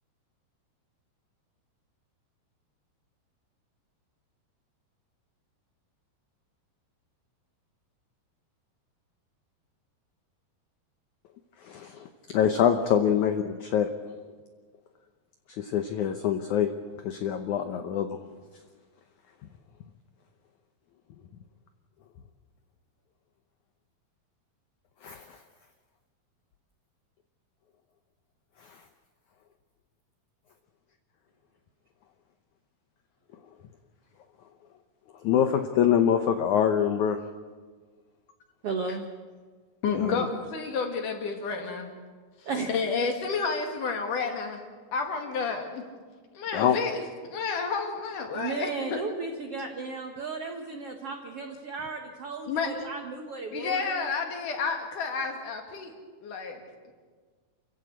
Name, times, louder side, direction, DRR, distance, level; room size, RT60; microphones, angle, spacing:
voice 1, 11.6-13.9 15.6-16.7 17.0-18.2 25.0-25.2 35.2-37.2 40.0-40.3 46.5-46.8, left 9 dB, 75° left, 7 dB, 1.8 m, -25 dB
voice 2, 38.6-39.1 42.4-42.7 48.3-54.1, right 4 dB, 70° right, 4 dB, 1.3 m, -34 dB
voice 3, 39.8-41.9 42.7-44.6 44.9-45.9 46.3-49.0 52.5-52.9 53.5-55.9 56.2-56.9, left 5 dB, 55° left, 4 dB, 3.4 m, -30 dB
28.5 x 15.5 x 8.2 m, 1.5 s
omnidirectional pair, 4.7 m